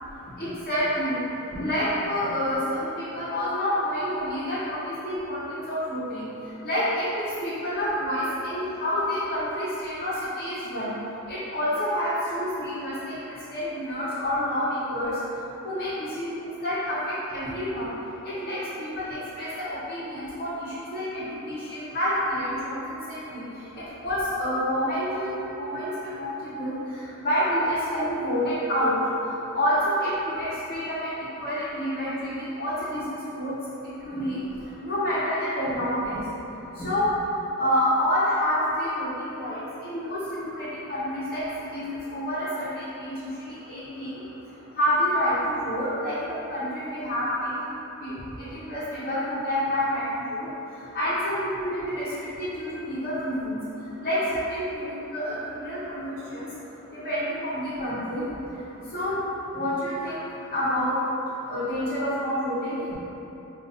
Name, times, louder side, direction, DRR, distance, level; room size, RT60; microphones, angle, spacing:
voice 1, 0.4-1.2 1.5-6.3 6.6-7.0 7.4-10.9 11.3-15.1 15.6-15.9 16.2-16.3 16.6-17.9 18.4-19.1 19.4-22.7 23.1-23.4 24.0-25.3 25.6-25.9 26.2-26.7 27.2-28.9 29.5-30.1 30.4-31.1 31.4-32.3 32.6-33.5 34.0-34.4 34.8-36.2 36.8-37.1 37.6-41.4 41.7-43.3 43.7-44.1 44.8-47.5 48.0-48.1 48.4-50.0 50.3-50.5 50.9-52.1 52.4-53.6 54.0-56.5 57.0-58.2 58.9-59.2 59.5-60.2 60.5-60.9 61.5-62.8, equal, 40° left, -14 dB, 0.9 m, -28 dB
5.1 x 2.5 x 2.6 m, 3.0 s
head